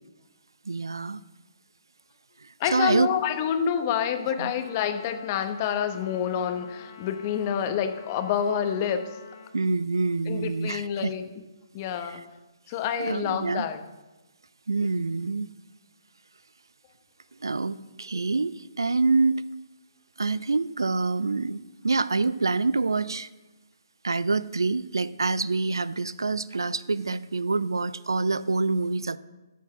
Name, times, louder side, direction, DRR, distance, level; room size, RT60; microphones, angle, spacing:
voice 1, 0.7-1.2 2.4-3.1 4.3-4.5 9.5-11.1 12.1-12.2 13.0-13.7 14.7-15.5 17.4-19.4 20.2-23.3 24.0-29.2, right 3 dB, 80° right, 18 dB, 0.4 m, -26 dB
voice 2, 2.6-9.0 10.3-11.3 11.7-12.2 12.7-13.8, left 8 dB, 35° left, 8 dB, 1.0 m, -28 dB
Trumpet, 4.5-9.6, left 6 dB, 55° left, 1.3 m, -48 dB
13.0 x 4.5 x 5.9 m, 1.1 s
figure-of-eight pair, 135°, 2 cm